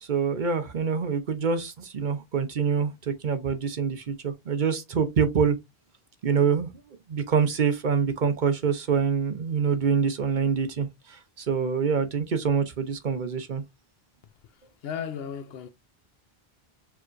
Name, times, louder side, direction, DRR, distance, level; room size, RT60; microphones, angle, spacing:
voice 1, 0.0-5.6 6.2-13.6, right 6 dB, 55° right, 0.8 m, -26 dB
voice 2, 14.8-15.7, left 8 dB, 75° left, 0.8 m, -34 dB
4.7 x 2.9 x 2.5 m
omnidirectional pair, 1.0 m